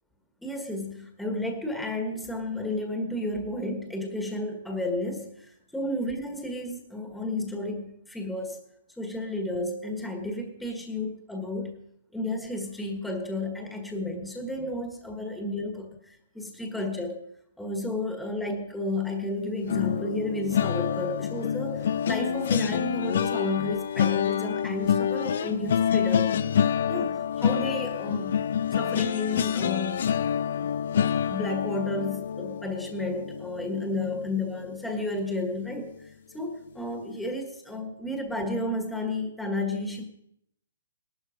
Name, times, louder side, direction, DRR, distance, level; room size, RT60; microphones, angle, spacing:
voice 1, 0.4-8.6 9.0-11.8 12.1-17.2 17.6-26.3 26.9-28.4 28.7-30.1 30.6-40.0, left 2 dB, ahead, 3 dB, 1.6 m, -32 dB
sound 1, 19.7-34.8 35.2-35.5 35.8-36.0, left 8 dB, 55° left, 0.8 m, -27 dB
18.0 x 12.0 x 5.2 m, 0.74 s
hypercardioid pair, 155°, 0 cm